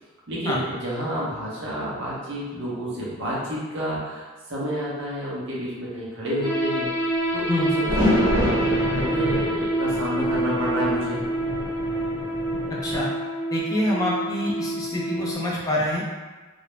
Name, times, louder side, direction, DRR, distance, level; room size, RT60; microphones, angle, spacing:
voice 1, 0.3-11.2, equal, 55° right, -7 dB, 0.8 m, -30 dB
sound 1, 6.4-15.3, right 1 dB, 35° right, 1.3 m, -27 dB
sound 2, 7.4-13.0, equal, 75° right, 1.0 m, -28 dB
voice 2, 13.5-16.0, left 1 dB, 15° left, -5 dB, 0.4 m, -26 dB
2.4 x 2.0 x 3.1 m, 1.3 s
head